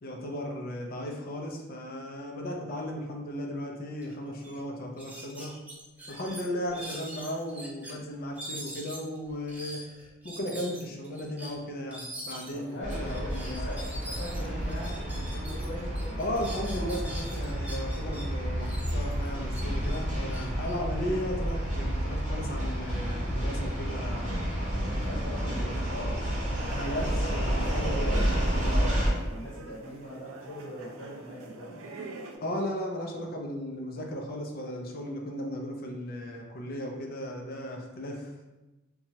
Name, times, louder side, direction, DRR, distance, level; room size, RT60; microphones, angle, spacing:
voice 1, 0.0-5.6 6.1-9.8 10.2-13.8 16.2-24.5 26.7-28.1 32.4-38.5, equal, 50° left, 1 dB, 0.4 m, -36 dB
sound 1, 4.0-4.1 4.4-4.6 5.0-7.9 8.3-15.7 15.9-18.2 18.6-21.5, right 1 dB, 10° right, 0.4 m, -43 dB
voice 2, 12.5-16.2 24.7-29.0 29.3-31.8, left 1 dB, 65° left, -5 dB, 0.9 m, -41 dB
sound 2, 12.8-29.1, equal, 40° right, 0.8 m, -30 dB
sound 3, 26.6-32.4, right 3 dB, 75° right, 0.4 m, -44 dB
2.9 x 2.2 x 2.7 m, 1.1 s
head